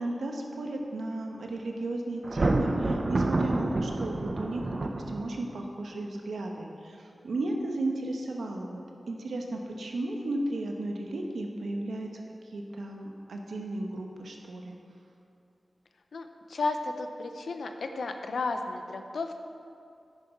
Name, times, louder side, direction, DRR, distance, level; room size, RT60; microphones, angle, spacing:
voice 1, 0.0-8.8 9.1-14.8, right 2 dB, 85° right, 1 dB, 1.1 m, -34 dB
Thunder, 2.2-5.6, right 2 dB, 50° right, 0.8 m, -28 dB
voice 2, 16.1-19.4, left 3 dB, 85° left, 6 dB, 0.7 m, -33 dB
10.0 x 9.4 x 4.5 m, 2.5 s
cardioid pair, 40°, 0 cm